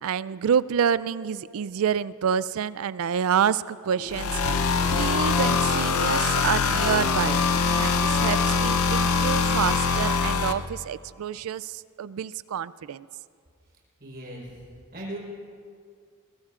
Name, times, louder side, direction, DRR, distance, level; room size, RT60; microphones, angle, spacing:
voice 1, 0.0-4.4 4.9-7.4 7.7-13.1, right 8 dB, 65° right, 18 dB, 0.3 m, -27 dB
sound 1, 3.9-9.2, equal, 25° right, 2.3 m, -44 dB
sound 2, 4.1-10.5, left 5 dB, 70° left, 0.7 m, -23 dB
voice 2, 14.0-14.5 14.9-15.2, right 1 dB, 45° right, -3 dB, 4.3 m, -37 dB
22.0 x 21.5 x 2.5 m, 2.2 s
head